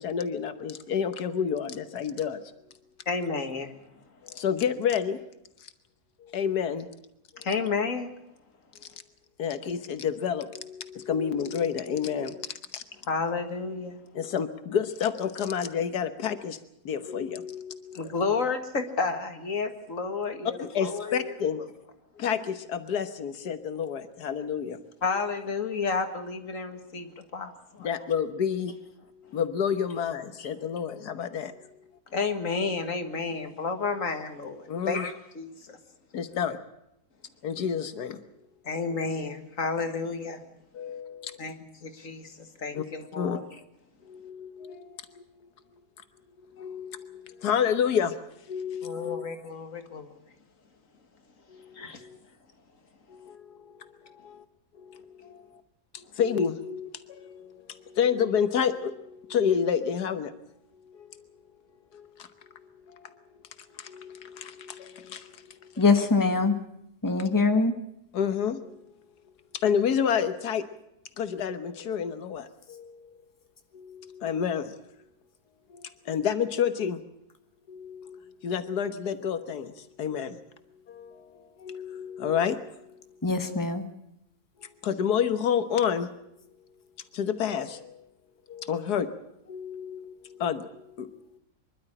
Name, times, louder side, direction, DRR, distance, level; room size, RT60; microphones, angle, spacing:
voice 1, 0.0-2.4 4.3-5.2 6.3-6.9 9.4-12.8 14.2-16.6 16.9-18.0 20.4-21.6 22.2-24.8 25.1-25.2 27.8-28.9 29.3-31.5 34.7-35.1 36.1-36.6 37.4-38.2 40.7-41.5 42.7-42.8 43.2-43.4 44.1-44.9 46.6-48.1 48.5-49.2 51.5-51.6 52.0-52.2 53.1-53.4 54.2-54.4 54.9-55.0 56.2-57.5 57.9-60.3 61.9-62.1 63.8-65.3 67.3-67.4 68.1-68.7 69.6-70.6 71.2-72.9 73.7-74.7 75.7-77.0 77.7-79.7 80.0-80.4 80.9-81.2 81.6-82.6 84.8-86.1 87.1-87.9 88.5-89.1 89.5-90.7 91.0-91.1, left 7 dB, 90° left, 10 dB, 1.7 m, -29 dB
voice 2, 3.1-3.7 7.4-8.1 13.1-14.0 17.9-21.3 25.0-27.9 30.4-30.5 32.1-35.8 38.6-40.4 41.4-43.4 48.8-50.1 51.7-52.1, left 4 dB, 55° left, 7 dB, 2.2 m, -31 dB
voice 3, 65.8-66.5 67.0-67.7 83.2-83.8, left 3 dB, 15° left, 6 dB, 1.5 m, -23 dB
24.5 x 12.0 x 9.9 m, 0.82 s
omnidirectional pair, 1.6 m